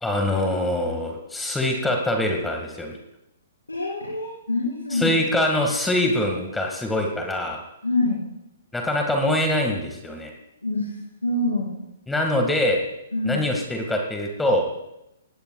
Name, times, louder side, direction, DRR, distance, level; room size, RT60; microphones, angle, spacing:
voice 1, 0.0-3.0 4.9-7.6 8.7-10.3 12.1-12.8 13.2-14.6, left 1 dB, 5° left, 2 dB, 1.9 m, -24 dB
voice 2, 3.7-5.1 7.8-8.2 10.6-10.9 11.2-11.8 13.1-13.4, left 2 dB, 85° left, -6 dB, 4.9 m, -25 dB
19.5 x 17.5 x 2.4 m, 0.86 s
figure-of-eight pair, 120°, 0 cm